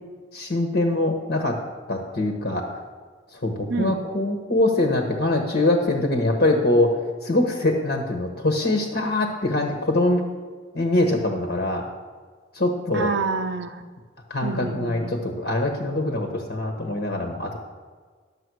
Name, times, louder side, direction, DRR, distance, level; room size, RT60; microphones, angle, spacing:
voice 1, 0.3-1.6 1.9-2.7 3.3-10.2 10.7-11.8 12.5-13.1 14.3-17.6, left 2 dB, 60° left, 3 dB, 1.3 m, -23 dB
voice 2, 3.7-4.0 12.9-13.8 14.4-15.1, right 4 dB, 70° right, 5 dB, 0.6 m, -27 dB
11.0 x 7.6 x 6.3 m, 1.5 s
head